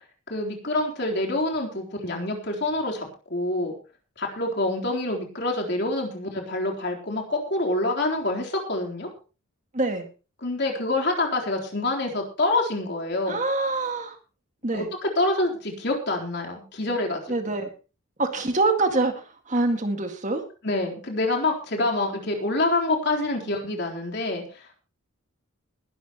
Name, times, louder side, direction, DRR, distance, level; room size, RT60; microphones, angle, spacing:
voice 1, 0.3-3.7 4.2-9.1 10.4-13.4 14.7-17.5 20.6-24.8, left 2 dB, 50° left, 1 dB, 3.9 m, -26 dB
voice 2, 9.7-10.1 13.3-14.2 14.6-14.9 17.3-17.7 18.2-20.4, right 2 dB, 35° right, 6 dB, 2.0 m, -25 dB
20.5 x 12.0 x 3.1 m, 0.34 s
head